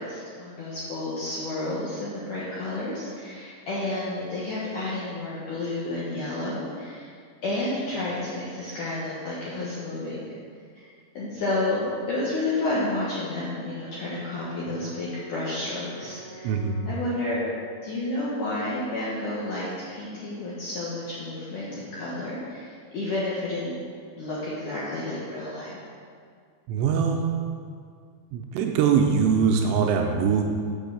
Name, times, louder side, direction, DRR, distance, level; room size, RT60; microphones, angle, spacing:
voice 1, 0.0-7.1 7.4-10.3 10.7-10.9 11.1-16.5 16.9-17.4 17.8-23.7 24.2-25.8, left 2 dB, 70° left, -8 dB, 1.9 m, -31 dB
Brass instrument, 13.5-17.8, right 1 dB, 55° right, 2.1 m, -47 dB
voice 2, 16.4-16.8 26.7-27.3 28.3-30.4, right 6 dB, 85° right, 3 dB, 2.8 m, -22 dB
7.0 x 5.8 x 6.9 m, 2.1 s
omnidirectional pair, 5.3 m